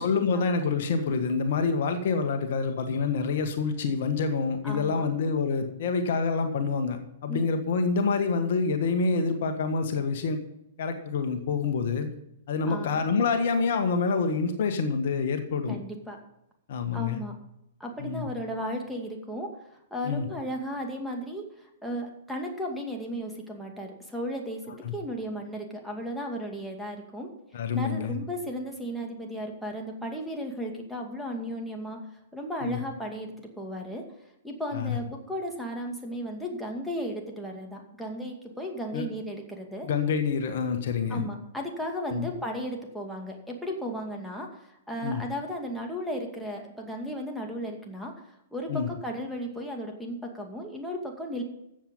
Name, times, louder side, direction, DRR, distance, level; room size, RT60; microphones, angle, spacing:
voice 1, 0.0-10.4 10.8-12.1 12.5-15.8 16.7-17.2 18.0-18.3 20.0-20.3 24.8-24.9 27.5-28.1 32.6-32.8 34.7-35.0 38.9-39.0 39.8-41.2 42.1-42.3 45.0-45.2 48.7-48.9, left 5 dB, 60° left, 6 dB, 1.5 m, -27 dB
voice 2, 4.6-5.1 7.3-7.4 12.7-13.0 15.7-16.2 16.9-17.3 17.8-27.3 27.7-32.0 32.3-34.0 34.4-39.9 41.1-51.4, equal, ahead, 0 dB, 2.4 m, -35 dB
13.5 x 7.8 x 5.6 m, 0.84 s
figure-of-eight pair, 110°, 0 cm